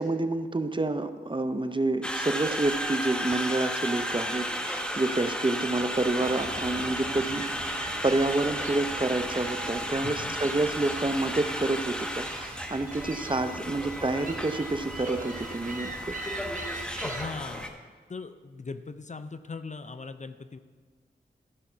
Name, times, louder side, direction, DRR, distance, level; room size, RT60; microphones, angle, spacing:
voice 1, 0.0-7.4 8.0-16.1, right 2 dB, 25° right, 9 dB, 0.7 m, -28 dB
Conversation, 2.0-17.7, equal, 5° left, 1.1 m, -34 dB
sound 1, 5.7-11.4, right 4 dB, 65° right, 0.8 m, -45 dB
sound 2, 6.2-17.3, right 2 dB, 45° right, 1.3 m, -43 dB
voice 2, 10.0-10.4 17.0-17.8 18.1-20.6, left 4 dB, 40° left, 11 dB, 0.6 m, -39 dB
13.0 x 5.7 x 5.6 m, 1.5 s
cardioid pair, 45°, 18 cm